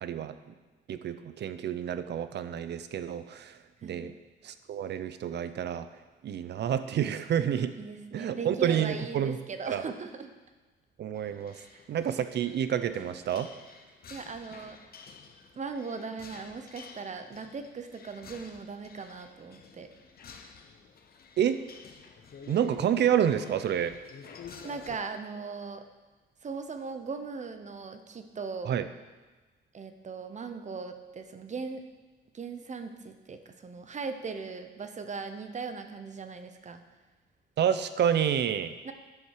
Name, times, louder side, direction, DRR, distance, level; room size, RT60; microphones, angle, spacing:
voice 1, 0.0-0.3 0.9-4.1 4.4-5.9 6.2-7.7 8.1-9.4 9.7-9.8 11.0-11.6 11.9-13.5 21.4-21.6 22.5-24.0 28.7-28.8 37.6-38.7, right 9 dB, 60° right, 11 dB, 0.7 m, -29 dB
voice 2, 3.8-4.1 7.8-10.3 11.7-11.8 14.1-14.8 15.6-19.9 24.6-25.8 26.4-28.7 29.7-31.8 32.3-36.8 38.8-38.9, right 5 dB, 35° right, 8 dB, 0.9 m, -39 dB
sound 1, 11.1-25.0, left 5 dB, 50° left, 1.0 m, -50 dB
9.8 x 7.4 x 4.9 m, 1.3 s
cardioid pair, 90°, 20 cm